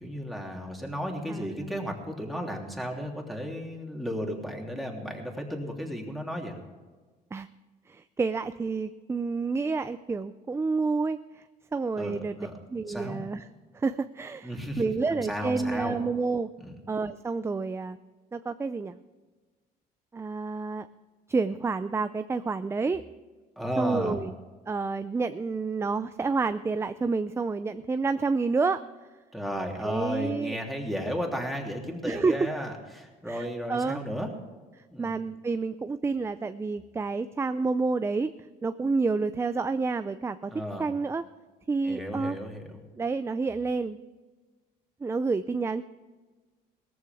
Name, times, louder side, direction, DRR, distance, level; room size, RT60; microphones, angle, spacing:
voice 1, 0.0-6.6 12.0-12.5 12.9-13.2 14.4-14.8 15.1-16.0 16.6-16.8 23.6-24.2 29.3-34.3 34.9-35.2 40.5-40.9 41.8-42.8, equal, ahead, 0 dB, 3.0 m, -34 dB
voice 2, 1.3-1.7 7.3-7.5 7.9-11.4 11.7-12.4 12.7-13.4 13.7-14.5 14.8-16.5 16.9-18.0 18.3-19.0 20.1-20.9 21.3-23.0 23.8-24.3 24.7-28.8 29.8-30.6 32.1-32.5 33.3-34.0 35.0-38.3 38.6-40.5 40.8-41.2 41.7-42.4 43.0-44.0 45.0-45.8, right 4 dB, 15° right, 12 dB, 0.4 m, -29 dB
18.0 x 14.0 x 3.6 m, 1.3 s
cardioid pair, 110°, 17 cm